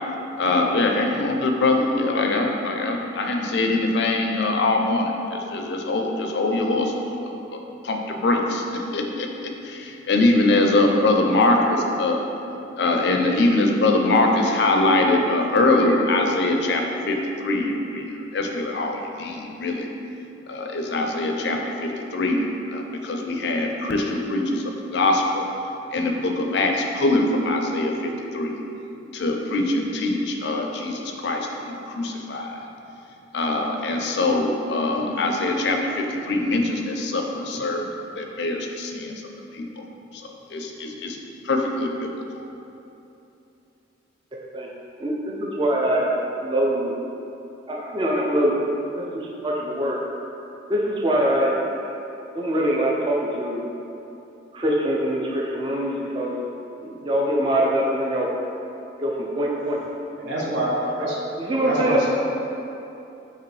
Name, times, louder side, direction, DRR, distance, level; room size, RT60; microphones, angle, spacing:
voice 1, 0.4-12.2 12.8-19.9 20.5-22.4 22.7-25.5 25.9-28.6 29.1-32.6 33.3-37.8 38.2-39.1 39.5-39.7 40.2-41.2 41.4-42.1, left 2 dB, 60° left, 2 dB, 0.4 m, -23 dB
voice 2, 45.0-46.1 46.4-46.9 47.7-50.0 50.7-51.6 52.3-53.6 54.5-56.4 56.8-58.3 59.0-60.1 61.0-61.1 61.4-62.0, right 1 dB, 25° right, -3 dB, 0.4 m, -23 dB
voice 3, 60.2-61.2 61.6-62.0, right 1 dB, 70° right, -5 dB, 0.9 m, -26 dB
5.0 x 2.9 x 3.2 m, 2.8 s
head